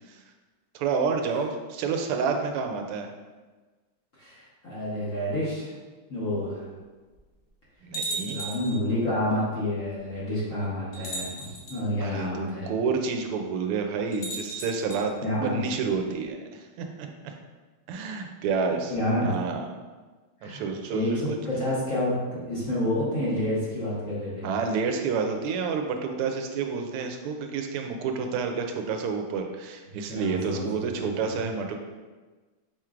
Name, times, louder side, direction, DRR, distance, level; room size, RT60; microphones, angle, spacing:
voice 1, 0.7-3.1 7.8-8.4 12.0-17.1 17.9-18.9 19.2-19.7 20.4-21.4 24.4-31.8, right 5 dB, 90° right, 4 dB, 1.5 m, -29 dB
voice 2, 4.2-5.7 6.1-6.7 8.3-12.7 15.2-15.6 18.9-19.3 20.4-20.7 20.9-24.5 30.1-31.0, left 1 dB, 45° left, -8 dB, 1.1 m, -29 dB
sound 1, 7.1-7.2 7.9-8.8 9.9-10.0 10.9-11.8 14.1-15.0, right 2 dB, 75° left, 0.6 m, -35 dB
5.0 x 4.4 x 2.4 m, 1.3 s
omnidirectional pair, 2.4 m